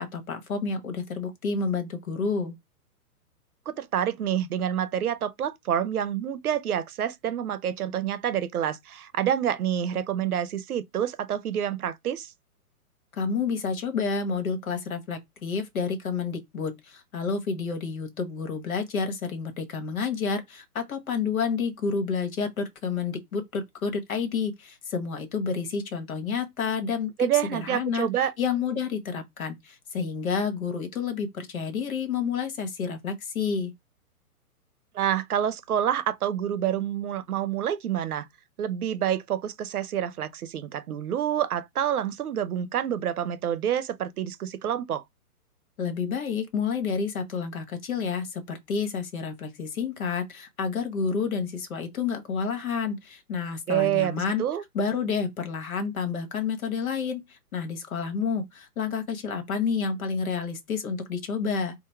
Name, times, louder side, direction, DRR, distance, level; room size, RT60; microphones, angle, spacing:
voice 1, 0.0-2.5 13.2-28.1 28.4-33.7 45.8-54.4 54.7-61.7, left 5 dB, 65° left, 1.2 m, -29 dB
voice 2, 3.7-12.3 27.2-28.3 34.9-38.3 38.6-45.0 53.7-54.6, right 10 dB, 70° right, 0.7 m, -28 dB
3.8 x 2.1 x 4.3 m
hypercardioid pair, 135°, 46 cm